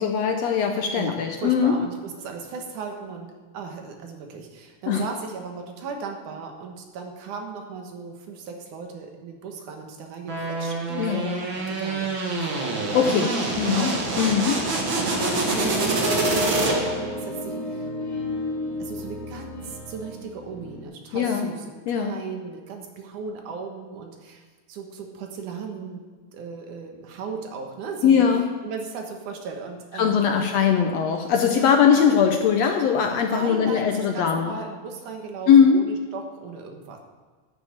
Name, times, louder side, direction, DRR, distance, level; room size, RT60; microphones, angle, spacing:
voice 1, 0.0-1.7 4.9-5.0 10.9-11.2 12.9-13.3 13.6-13.9 14.2-14.5 21.1-21.5 21.9-22.1 28.0-28.4 30.0-34.5 35.5-35.8, left 7 dB, 70° left, 4 dB, 1.7 m, -20 dB
voice 2, 1.0-12.1 12.4-13.3 13.6-15.9 16.2-17.9 18.8-24.4 24.7-26.0 26.3-28.2 28.6-30.2 31.4-32.0 33.3-37.0, right 5 dB, 75° right, 3 dB, 2.7 m, -37 dB
sound 1, 10.3-17.1, right 2 dB, 45° right, 1.8 m, -26 dB
sound 2, 13.9-20.8, equal, 30° left, 3.2 m, -43 dB
sound 3, 15.0-20.2, left 1 dB, 55° left, 3.2 m, -32 dB
12.0 x 6.9 x 7.3 m, 1.4 s
omnidirectional pair, 3.7 m